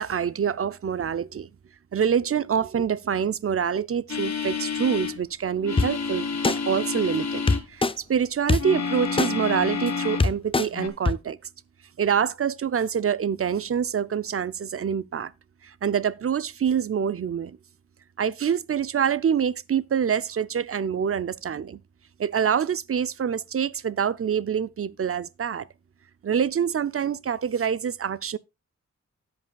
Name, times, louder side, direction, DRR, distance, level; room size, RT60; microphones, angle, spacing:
voice 1, 0.0-1.5 1.9-11.4 12.0-15.3 15.6-17.6 18.2-21.8 22.2-25.7 26.2-28.4, right 7 dB, 50° right, 0.4 m, -26 dB
sound 1, 4.1-5.2 5.6-7.6 8.6-10.3 10.7-10.9, left 5 dB, 65° left, 1.4 m, -29 dB
sound 2, 5.8-5.9 6.4-6.6 7.5-7.9 8.5-8.6 9.2-9.3 9.9-10.0 10.2-10.7 11.0-11.1, left 3 dB, 20° left, 0.4 m, -21 dB
13.0 x 7.9 x 2.2 m
wide cardioid pair, 115°, 29 cm